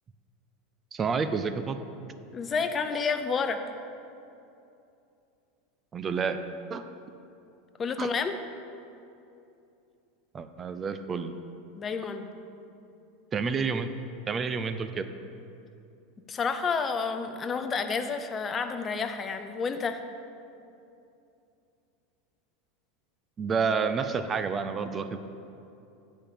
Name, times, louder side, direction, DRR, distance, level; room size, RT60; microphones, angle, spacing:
voice 1, 0.9-1.8 5.9-6.4 6.7-6.8 8.0-8.1 10.3-11.3 13.3-13.9 14.3-15.1 23.4-25.2, right 5 dB, 25° right, 10 dB, 0.5 m, -29 dB
voice 2, 2.3-3.6 7.8-8.3 11.8-12.3 16.3-20.0, left 5 dB, 25° left, 8 dB, 0.6 m, -30 dB
8.9 x 5.2 x 7.3 m, 2.7 s
supercardioid pair, 120°, 0 cm